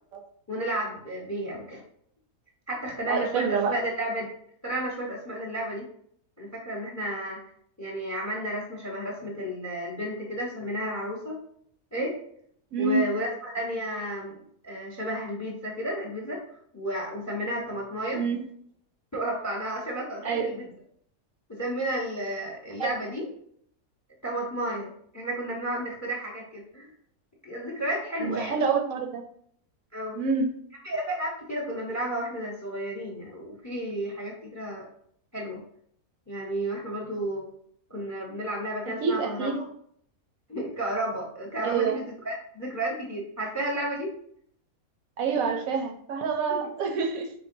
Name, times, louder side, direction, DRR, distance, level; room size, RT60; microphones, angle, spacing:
voice 1, 0.5-1.8 2.7-4.3 4.6-5.8 6.4-7.4 7.8-11.3 11.9-12.2 12.8-14.4 14.6-18.2 19.1-20.6 21.5-23.3 24.2-26.9 27.4-28.6 29.9-30.2 30.8-34.9 35.3-35.6 36.3-37.5 37.9-39.6 40.5-44.1 46.5-46.6, right 1 dB, 20° left, -2 dB, 0.5 m, -32 dB
voice 2, 3.1-3.7 12.7-13.0 18.1-18.4 20.2-20.4 22.8-22.9 28.2-29.2 30.1-30.5 38.9-39.6 41.6-42.0 45.2-47.3, right 5 dB, 70° right, 4 dB, 1.0 m, -27 dB
4.5 x 3.4 x 2.6 m, 0.65 s
omnidirectional pair, 1.6 m